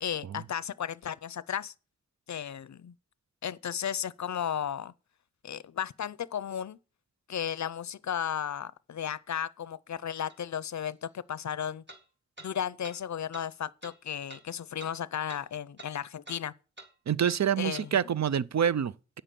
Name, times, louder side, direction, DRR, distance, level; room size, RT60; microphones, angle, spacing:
voice 1, 0.0-1.7 2.3-2.9 3.4-4.9 5.4-6.8 7.3-11.8 12.4-16.5 17.6-18.0, left 9 dB, 75° left, 0.5 m, -34 dB
sound 1, 10.3-10.4 11.9-12.0 12.4-12.5 12.8-13.0 13.3-13.5 13.8-14.0 14.3-14.4 14.8-14.9 15.3-15.4 15.8-15.9 16.3-16.4 16.8-16.9 17.3-17.4 17.7-17.9, right 2 dB, 40° right, 2.1 m, -48 dB
voice 2, 17.1-19.2, right 8 dB, 70° right, 0.5 m, -27 dB
8.8 x 6.7 x 7.5 m
wide cardioid pair, 60°, 29 cm